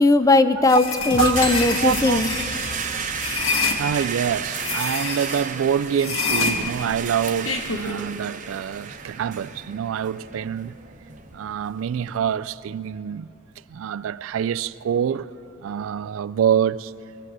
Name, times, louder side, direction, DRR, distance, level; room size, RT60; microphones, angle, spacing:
voice 1, 0.0-2.3, left 2 dB, 15° left, 0.5 m, -18 dB
sound 1, 0.6-12.2, right 7 dB, 40° right, 0.8 m, -34 dB
sound 2, 0.7-3.8 4.5-5.5 5.9-7.9, left 4 dB, 80° left, 1.4 m, -27 dB
sound 3, 1.1-5.4, left 2 dB, 60° left, 1.1 m, -36 dB
voice 2, 1.2-2.2 2.9-3.1 3.6-10.7 11.3-13.3 13.7-15.3 15.6-16.9, right 8 dB, 80° right, 0.3 m, -26 dB
22.0 x 8.0 x 7.5 m
head